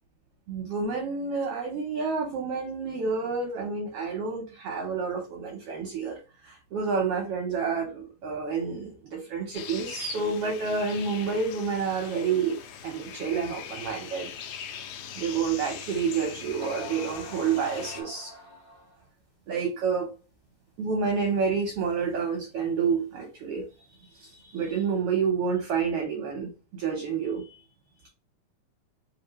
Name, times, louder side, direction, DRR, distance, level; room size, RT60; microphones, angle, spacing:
voice 1, 0.5-6.2 6.4-12.6 12.8-14.3 15.1-18.3 19.5-20.1 20.8-23.7 24.0-27.6, right 5 dB, 70° right, 1 dB, 1.5 m, -29 dB
sound 1, 9.5-18.0, left 8 dB, 80° left, 2.1 m, -41 dB
sound 2, 16.3-16.4 16.6-19.1, right 1 dB, 50° left, 0.5 m, -44 dB
4.3 x 3.4 x 3.0 m, 0.32 s
omnidirectional pair, 3.5 m